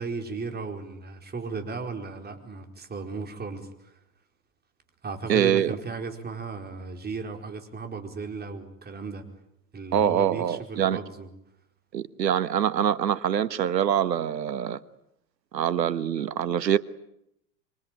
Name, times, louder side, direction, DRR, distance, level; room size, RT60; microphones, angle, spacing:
voice 1, 0.0-4.0 5.0-9.3 9.7-11.3, right 4 dB, 20° right, 4.6 m, -35 dB
voice 2, 5.3-5.7 9.9-11.0 11.9-14.8 15.5-16.8, right 9 dB, 85° right, 1.4 m, -24 dB
26.5 x 24.5 x 9.2 m
hypercardioid pair, 100°, 49 cm